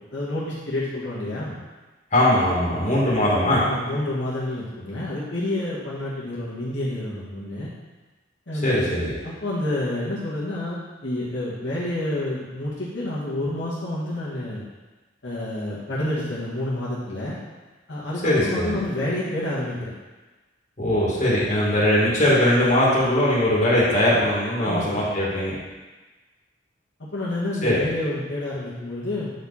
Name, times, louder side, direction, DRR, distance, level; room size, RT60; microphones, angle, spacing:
voice 1, 0.1-1.6 3.6-7.7 8.5-8.9 9.2-14.6 15.2-17.4 17.9-19.9 24.6-24.9 27.0-29.3, left 1 dB, 70° left, -8 dB, 1.7 m, -29 dB
voice 2, 2.1-3.6 8.6-9.1 18.2-18.7 20.8-25.6 27.6-27.8, left 1 dB, 40° left, -7 dB, 2.4 m, -20 dB
8.2 x 4.8 x 4.2 m, 1.2 s
head